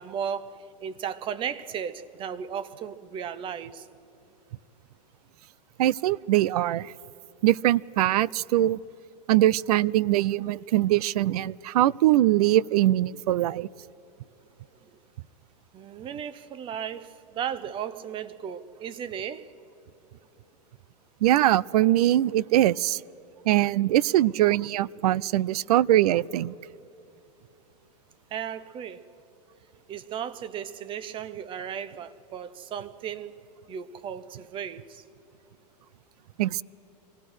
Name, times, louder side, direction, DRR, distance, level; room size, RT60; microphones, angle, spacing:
voice 1, 0.0-3.9 15.7-19.5 28.3-29.0 29.9-33.4 33.7-35.0, right 8 dB, 25° right, 0.7 m, -35 dB
voice 2, 5.8-6.9 7.4-8.8 9.3-13.7 21.2-23.0 23.5-26.5 36.4-36.6, right 14 dB, 65° right, 0.4 m, -22 dB
24.5 x 17.0 x 6.2 m
hypercardioid pair, 130°, 21 cm